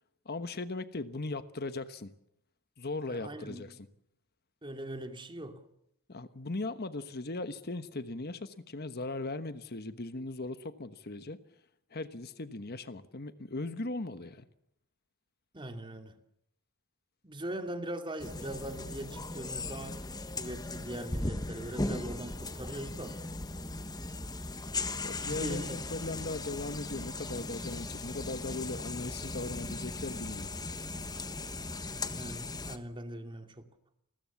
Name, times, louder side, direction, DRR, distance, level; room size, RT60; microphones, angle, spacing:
voice 1, 0.2-2.1 2.8-3.9 6.1-11.4 11.9-14.5 25.0-30.5, left 2 dB, 45° left, 1.2 m, -38 dB
voice 2, 3.1-3.8 4.6-5.6 15.5-16.1 17.2-23.2 25.2-25.8 31.9-33.6, right 1 dB, 20° right, 2.5 m, -41 dB
sound 1, 18.2-32.8, left 2 dB, 20° left, 1.3 m, -38 dB
29.5 x 20.5 x 7.2 m
head